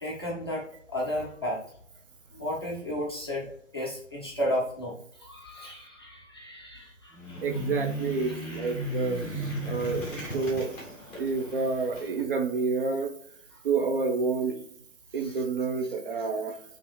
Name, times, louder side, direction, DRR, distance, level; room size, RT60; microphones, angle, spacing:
voice 1, 0.0-1.6 2.3-7.4 15.2-15.4, equal, 20° left, -5 dB, 0.4 m, -33 dB
sound 1, 7.1-12.1, equal, 5° left, 0.9 m, -35 dB
voice 2, 7.4-10.7 11.2-13.1 13.6-14.6 15.1-16.6, right 4 dB, 45° right, 4 dB, 0.8 m, -29 dB
5.2 x 2.8 x 2.2 m, 0.65 s
figure-of-eight pair, 140°, 38 cm